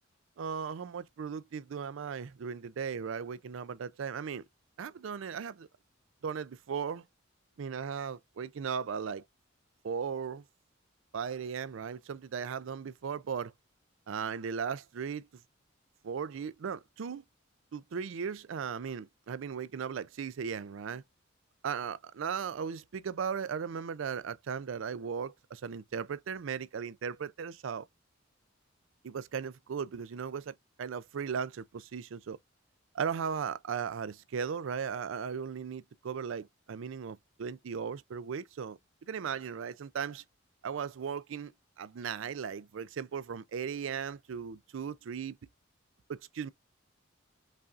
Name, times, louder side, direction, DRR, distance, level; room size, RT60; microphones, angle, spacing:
voice 1, 0.4-4.4 4.8-5.7 6.2-7.0 7.6-9.2 9.8-10.4 11.1-13.5 14.1-15.3 16.0-17.2 17.7-21.0 21.6-27.9 29.0-32.4 32.9-40.2 40.6-45.4 46.1-46.5, right 6 dB, 65° right, 0.4 m, -37 dB
5.5 x 2.4 x 2.4 m
head